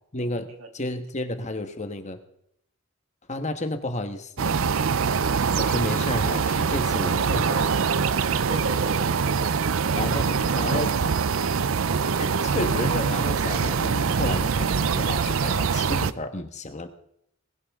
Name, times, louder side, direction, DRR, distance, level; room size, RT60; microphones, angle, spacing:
voice 1, 0.1-2.2 3.3-4.8 5.5-7.6 9.9-10.9 12.2-16.9, left 2 dB, 35° left, 7 dB, 1.4 m, -32 dB
sound 1, 4.4-16.1, right 5 dB, 65° right, 0.5 m, -24 dB
voice 2, 8.5-9.5 9.9-11.3, right 3 dB, 90° right, 3 dB, 2.8 m, -37 dB
19.5 x 17.0 x 3.7 m, 0.72 s
head